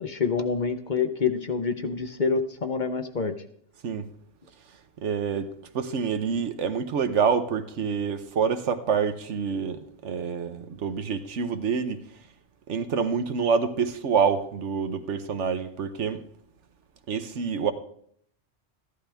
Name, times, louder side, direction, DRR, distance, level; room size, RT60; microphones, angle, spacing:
voice 1, 0.0-3.3, left 5 dB, 45° left, 0.9 m, -27 dB
voice 2, 5.0-12.0 12.7-16.2 17.1-17.7, right 6 dB, 75° right, 1.2 m, -27 dB
14.5 x 11.5 x 3.5 m
omnidirectional pair, 1.2 m